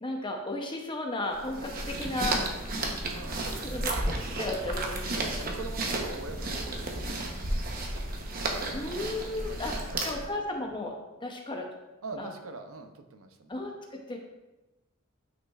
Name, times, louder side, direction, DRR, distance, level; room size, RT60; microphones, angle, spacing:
voice 1, 0.0-2.4 3.6-5.4 8.7-9.8 10.0-10.9 11.2-11.7 12.2-12.3 13.5-14.2, left 2 dB, 25° left, 2 dB, 0.6 m, -34 dB
sound 1, 1.3-10.3, right 2 dB, 45° right, 0.9 m, -33 dB
sound 2, 1.9-7.9, equal, 5° left, 1.1 m, -45 dB
voice 2, 3.0-3.9 5.1-7.8 9.0-9.1 9.5-10.3 12.0-13.6, right 3 dB, 90° right, 7 dB, 0.7 m, -44 dB
9.5 x 5.5 x 2.4 m, 1.0 s
head